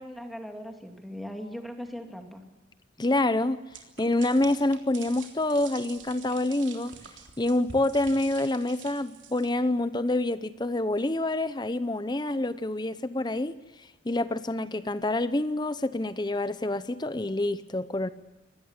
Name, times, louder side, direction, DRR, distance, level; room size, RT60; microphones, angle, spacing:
voice 1, 0.0-2.4, equal, ahead, 4 dB, 2.5 m, -39 dB
voice 2, 3.0-3.6 4.0-7.0 7.4-18.1, left 2 dB, 20° left, 14 dB, 0.7 m, -27 dB
sound 1, 3.7-9.5, right 6 dB, 75° right, 3.5 m, -47 dB
25.0 x 19.5 x 8.1 m, 1.1 s
head